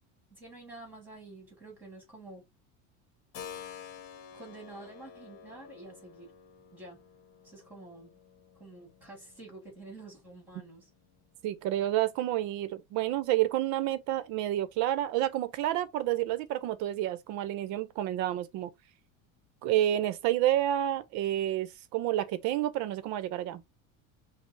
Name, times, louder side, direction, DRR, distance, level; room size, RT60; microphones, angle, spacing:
voice 1, 0.3-2.4 4.3-6.3 6.7-7.0 7.4-8.2 8.5-10.9, right 2 dB, 5° right, 1.6 m, -49 dB
Keyboard (musical), 3.3-11.9, left 8 dB, 55° left, 1.1 m, -51 dB
voice 2, 11.4-18.7 19.6-23.6, right 13 dB, 50° right, 0.6 m, -29 dB
5.2 x 2.0 x 3.3 m
cardioid pair, 165°, 38 cm